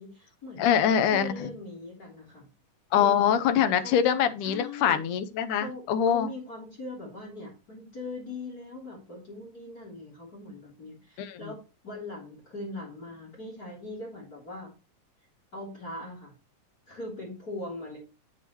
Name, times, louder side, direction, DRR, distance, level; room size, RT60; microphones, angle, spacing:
voice 1, 0.0-2.5 2.9-3.3 3.8-4.1 4.4-5.0 5.5-11.6 11.8-14.7 15.5-16.3 16.9-18.0, left 2 dB, 30° left, -1 dB, 3.4 m, -40 dB
voice 2, 0.6-1.3 2.9-6.3 11.2-11.5, left 8 dB, 75° left, 10 dB, 2.2 m, -24 dB
9.1 x 8.0 x 3.0 m, 0.30 s
omnidirectional pair, 3.8 m